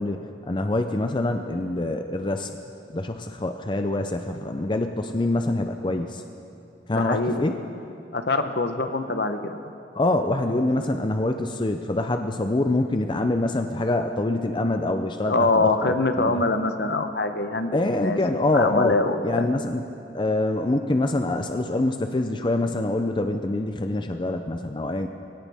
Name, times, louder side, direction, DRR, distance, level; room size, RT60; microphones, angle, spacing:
voice 1, 0.0-2.5 2.9-6.2 6.9-7.6 9.9-16.4 17.7-19.0 19.2-19.8 20.1-25.1, left 2 dB, 25° left, 6 dB, 0.5 m, -25 dB
voice 2, 6.9-7.4 8.1-9.6 15.3-19.4, left 2 dB, 60° left, 8 dB, 0.9 m, -24 dB
22.5 x 17.5 x 3.6 m, 2.7 s
head